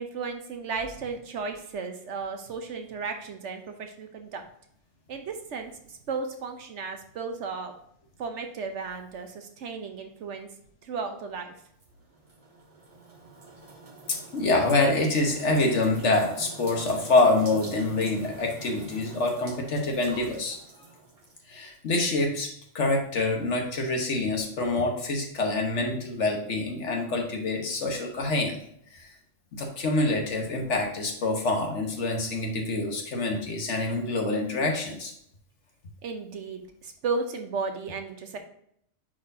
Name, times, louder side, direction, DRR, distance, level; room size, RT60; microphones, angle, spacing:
voice 1, 0.0-4.4 5.1-7.7 8.2-10.5 10.8-11.5 36.0-38.4, right 4 dB, 70° right, 6 dB, 1.2 m, -34 dB
sound 1, 11.8-21.4, right 3 dB, 30° right, 0.9 m, -46 dB
voice 2, 14.1-20.6 21.5-22.5 22.7-28.6 28.9-29.1 29.5-35.1, left 2 dB, 70° left, 2 dB, 1.5 m, -26 dB
9.4 x 4.4 x 2.7 m, 0.70 s
omnidirectional pair, 1.3 m